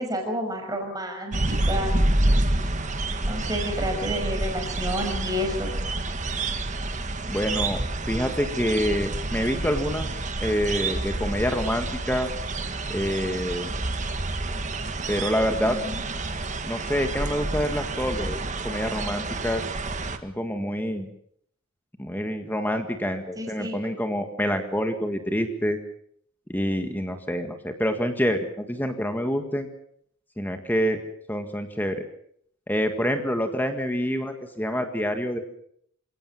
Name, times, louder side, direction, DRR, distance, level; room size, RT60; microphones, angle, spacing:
voice 1, 0.0-2.0 3.3-5.8 15.6-16.0 23.4-23.8, equal, 15° right, 2 dB, 5.6 m, -30 dB
sound 1, 1.3-20.2, right 2 dB, 35° right, 1.6 m, -28 dB
voice 2, 7.3-12.3 12.9-13.7 15.1-15.8 16.7-19.6 20.2-21.1 22.0-25.8 26.5-29.7 30.4-31.0 31.3-32.1 32.7-35.4, equal, 10° left, 6 dB, 1.9 m, -27 dB
27.5 x 17.5 x 7.3 m, 0.67 s
head